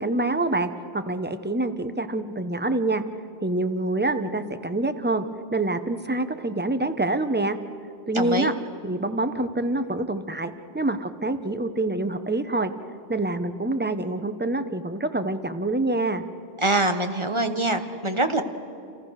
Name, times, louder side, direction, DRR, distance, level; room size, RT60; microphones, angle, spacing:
voice 1, 0.0-3.0 3.4-5.2 5.5-7.6 8.1-8.5 8.8-12.7 13.1-16.2, right 2 dB, 10° right, 10 dB, 1.0 m, -26 dB
voice 2, 8.1-8.5 16.6-18.4, right 2 dB, 25° right, 7 dB, 1.4 m, -24 dB
29.5 x 29.0 x 6.6 m, 2.6 s
omnidirectional pair, 1.1 m